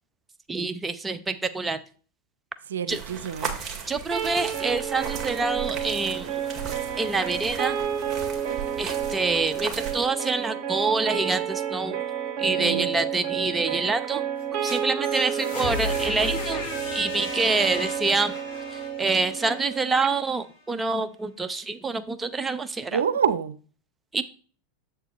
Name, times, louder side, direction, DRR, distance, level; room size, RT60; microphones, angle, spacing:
voice 1, 0.5-1.8 2.9-3.0 3.9-6.4 7.0-7.8 8.8-12.0 12.4-14.2 14.6-16.6 16.9-18.3 18.7-23.0 24.1-24.2, right 3 dB, 15° right, 0.8 m, -26 dB
voice 2, 2.7-3.6 12.6-13.0 22.9-23.5, right 7 dB, 85° right, 0.6 m, -27 dB
sound 1, 2.9-10.1, right 6 dB, 30° right, 2.1 m, -37 dB
sound 2, 4.1-20.1, right 9 dB, 50° right, 1.9 m, -31 dB
sound 3, 14.4-20.3, left 2 dB, 70° left, 3.9 m, -35 dB
7.6 x 6.8 x 3.1 m
hypercardioid pair, 95°, 0 cm